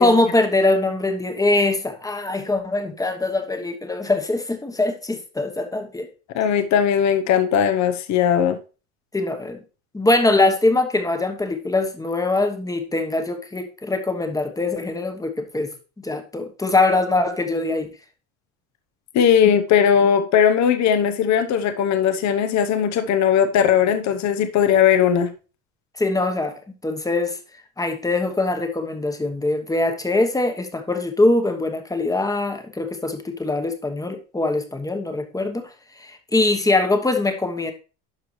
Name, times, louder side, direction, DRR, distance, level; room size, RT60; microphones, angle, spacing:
voice 1, 0.0-6.1 9.1-9.6 9.9-15.7 16.0-17.9 19.4-19.5 26.0-27.4 27.8-35.7 36.0-37.7, left 2 dB, 10° left, 1.1 m, -22 dB
voice 2, 6.3-8.6 19.1-25.3, left 8 dB, 45° left, 0.9 m, -18 dB
12.0 x 4.6 x 3.2 m
supercardioid pair, 120°, 40 cm